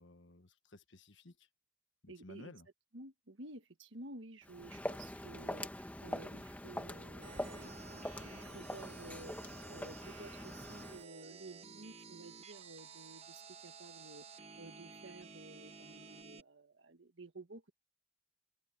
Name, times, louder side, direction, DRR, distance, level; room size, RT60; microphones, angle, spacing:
voice 1, 0.0-1.5 2.0-2.7, left 2 dB, 60° left, 1.4 m, -56 dB
voice 2, 2.1-2.5 2.9-9.4 9.7-17.7, right 2 dB, 65° right, 1.6 m, -53 dB
Walk footsteps, 4.4-11.0, left 1 dB, 10° left, 1.1 m, -44 dB
sound 1, 7.2-16.4, right 5 dB, 30° right, 0.8 m, -53 dB
head